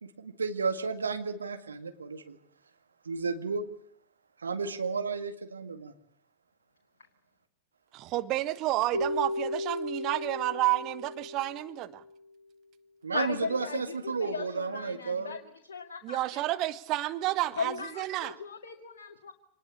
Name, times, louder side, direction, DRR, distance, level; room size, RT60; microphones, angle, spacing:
voice 1, 0.0-2.4 3.1-3.7 4.4-5.9 13.0-15.4, right 5 dB, 75° right, 8 dB, 2.0 m, -33 dB
voice 2, 7.9-12.0 16.0-18.3, right 16 dB, 40° right, 13 dB, 1.3 m, -30 dB
Keyboard (musical), 8.9-12.2, left 1 dB, 80° left, 1.8 m, -35 dB
voice 3, 13.1-15.4 15.7-16.2 16.5-16.6 17.6-19.3, left 5 dB, 65° left, 5 dB, 2.0 m, -37 dB
26.0 x 20.0 x 8.5 m, 0.68 s
figure-of-eight pair, 90°, 0 cm